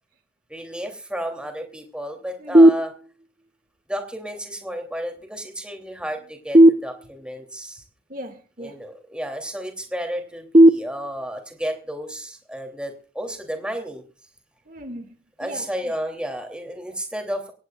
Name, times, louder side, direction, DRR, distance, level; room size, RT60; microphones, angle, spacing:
voice 1, 0.5-2.9 3.9-7.8 8.6-14.0 15.4-17.5, equal, 5° right, 3.0 m, -32 dB
voice 2, 2.4-2.7 8.1-8.8 14.7-15.1 15.4-15.9, equal, 50° right, 2.2 m, -38 dB
sound 1, 2.5-3.5 6.5-7.5 10.5-11.5, right 1 dB, 30° right, 0.8 m, -16 dB
24.5 x 17.0 x 2.5 m
head